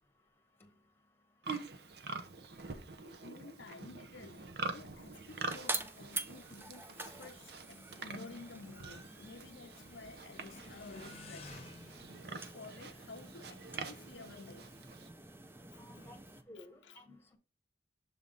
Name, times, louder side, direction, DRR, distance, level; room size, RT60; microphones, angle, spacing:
Livestock farm animals working animals, 1.4-15.1, right 3 dB, 60° right, 0.7 m, -46 dB
voice 1, 3.2-11.5 12.3-14.7 15.7-16.2 16.5-17.0, left 3 dB, 90° left, 0.6 m, -52 dB
sound 1, 4.7-16.4, right 3 dB, 10° right, 0.4 m, -47 dB
Motorcycle, 5.9-14.1, left 3 dB, 35° left, 0.9 m, -58 dB
voice 2, 15.8-16.2 16.5-17.4, left 1 dB, 15° left, 1.2 m, -54 dB
7.0 x 3.6 x 3.8 m
head